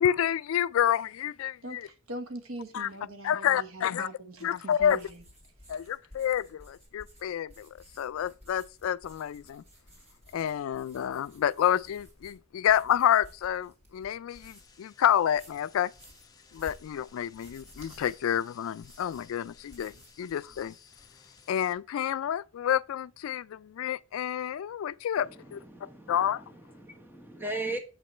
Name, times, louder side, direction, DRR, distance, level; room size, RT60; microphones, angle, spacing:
voice 1, 0.0-1.9 2.7-2.9 3.2-4.1 4.4-5.0 5.7-9.6 10.3-15.9 16.5-20.7 21.5-25.6 26.1-26.4, left 10 dB, 70° left, 0.3 m, -29 dB
voice 2, 1.6-4.5 4.8-5.2, right 2 dB, 80° right, 1.2 m, -41 dB
sound 1, 4.8-14.8 15.2-20.2 20.5-21.0, equal, 30° right, 2.9 m, -55 dB
sound 2, 14.3-21.7, left 6 dB, 20° left, 0.8 m, -58 dB
voice 3, 25.2-27.8, right 2 dB, 10° right, 1.2 m, -38 dB
7.8 x 5.1 x 4.3 m
head